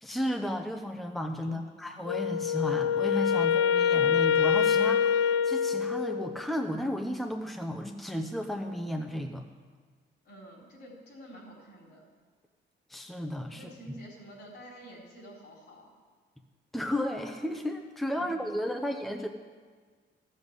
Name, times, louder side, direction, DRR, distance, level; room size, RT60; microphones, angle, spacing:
voice 1, 0.0-9.4 12.9-13.7 16.7-19.3, left 1 dB, ahead, 4 dB, 0.9 m, -33 dB
voice 2, 1.4-1.8 10.2-12.0 13.5-15.9 18.1-18.8, right 1 dB, 60° left, -1 dB, 4.2 m, -49 dB
Wind instrument woodwind instrument, 2.1-6.4, left 7 dB, 90° left, 0.5 m, -25 dB
13.5 x 7.4 x 8.2 m, 1.5 s
cardioid pair, 90°, 20 cm